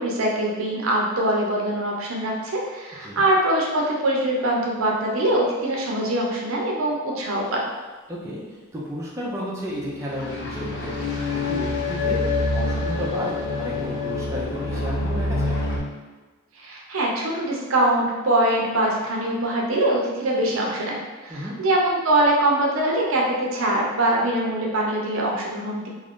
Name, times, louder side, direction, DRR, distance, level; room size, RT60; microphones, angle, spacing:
voice 1, 0.0-7.6 16.6-25.9, right 1 dB, 70° right, -2 dB, 0.6 m, -23 dB
voice 2, 8.1-15.6 21.3-21.6, equal, 15° right, -6 dB, 0.5 m, -33 dB
sound 1, 9.8-15.8, left 3 dB, 55° left, 0.6 m, -26 dB
2.5 x 2.4 x 3.5 m, 1.3 s
head